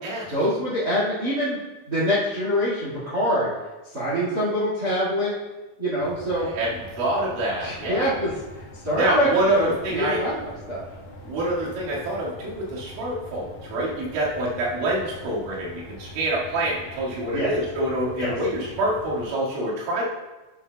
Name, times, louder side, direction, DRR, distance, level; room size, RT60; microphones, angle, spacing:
voice 1, 0.3-1.6 1.9-3.5 3.9-5.3 5.8-6.5 7.6-8.3 8.8-10.8 17.3-17.5 18.2-18.3, equal, 65° right, -7 dB, 0.9 m, -25 dB
sound 1, 6.0-19.3, left 1 dB, 55° left, 1.7 m, -43 dB
voice 2, 6.3-8.1 8.9-10.2 11.2-20.0, right 1 dB, 85° right, -6 dB, 4.5 m, -26 dB
12.0 x 8.8 x 2.3 m, 1.1 s
omnidirectional pair, 5.3 m